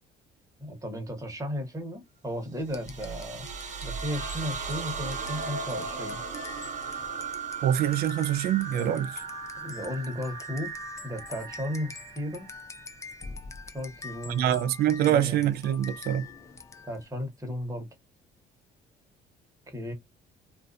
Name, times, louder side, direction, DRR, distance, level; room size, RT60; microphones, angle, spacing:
voice 1, 0.6-3.5 3.8-6.2 9.6-10.7 11.0-12.5 13.7-14.6 15.0-15.4 16.9-17.9 19.7-19.9, equal, 20° right, 1.1 m, -35 dB
sound 1, 2.6-13.2, right 5 dB, 45° right, 0.8 m, -37 dB
sound 2, 2.7-17.1, left 5 dB, 15° left, 0.4 m, -45 dB
voice 2, 7.6-9.1 14.3-16.3, right 11 dB, 65° right, 0.4 m, -25 dB
2.4 x 2.3 x 2.4 m
cardioid pair, 110°, 17 cm